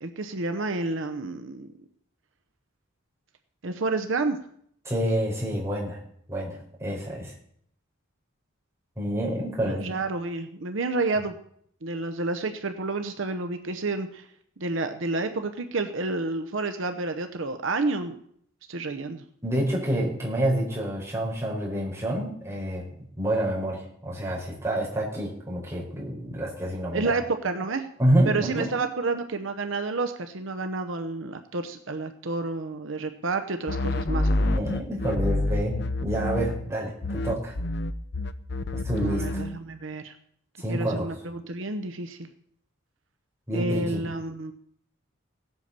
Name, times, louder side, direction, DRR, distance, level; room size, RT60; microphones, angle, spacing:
voice 1, 0.0-1.7 3.6-4.4 9.6-11.4 11.8-14.3 14.6-18.2 18.7-19.2 26.9-27.9 28.3-34.6 39.0-40.1 40.7-42.3 43.5-44.5, right 3 dB, 65° right, 7 dB, 0.8 m, -30 dB
voice 2, 4.8-6.0 6.3-7.3 9.0-9.8 19.4-22.8 23.2-27.2 28.0-28.7 34.4-37.5 38.7-39.4 40.6-41.1 43.5-44.0, right 1 dB, 15° right, -5 dB, 4.9 m, -28 dB
sound 1, 33.7-36.8 37.0-39.6, left 2 dB, 55° left, 0.7 m, -27 dB
17.0 x 8.3 x 6.7 m, 0.68 s
head